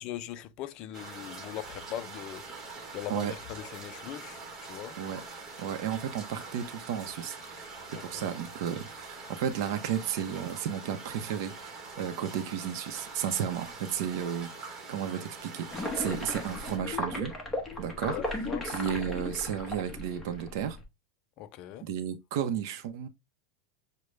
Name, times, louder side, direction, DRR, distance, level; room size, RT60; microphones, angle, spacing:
voice 1, 0.0-4.4 4.7-5.0 7.9-8.2 18.0-18.7 21.4-21.9, left 12 dB, 40° left, 0.4 m, -40 dB
sound 1, 0.9-16.8, right 4 dB, 20° right, 1.2 m, -44 dB
voice 2, 5.6-7.7 8.0-14.5 14.9-17.3 17.8-18.2 18.6-20.8 21.8-23.1, right 9 dB, 60° right, 0.7 m, -33 dB
sound 2, 15.7-20.8, left 2 dB, 10° left, 1.0 m, -36 dB
6.4 x 2.2 x 3.2 m
supercardioid pair, 150°, 2 cm